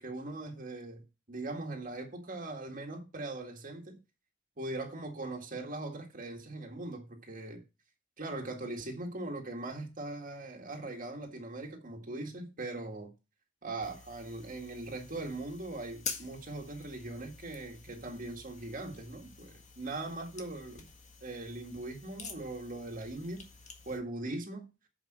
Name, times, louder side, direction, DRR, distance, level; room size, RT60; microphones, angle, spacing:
voice 1, 0.0-4.0 4.6-7.6 8.2-13.1 13.6-20.8 21.2-23.5 23.9-24.7, right 2 dB, 45° right, 1.8 m, -40 dB
sound 1, 13.8-24.0, left 5 dB, 40° left, 1.7 m, -48 dB
8.9 x 5.4 x 6.1 m
head